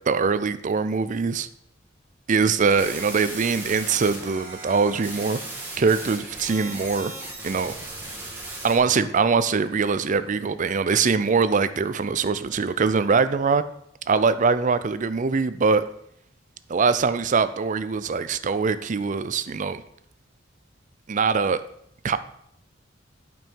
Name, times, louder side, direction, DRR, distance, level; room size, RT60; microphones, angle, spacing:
voice 1, 0.1-1.5 2.3-5.4 5.8-7.1 7.4-7.8 8.6-13.6 14.1-15.9 16.7-19.8 21.1-21.6 22.0-22.2, right 5 dB, 40° right, 13 dB, 0.5 m, -22 dB
sound 1, 2.5-8.8, right 2 dB, 10° right, 1.8 m, -37 dB
9.0 x 5.4 x 4.6 m, 0.70 s
head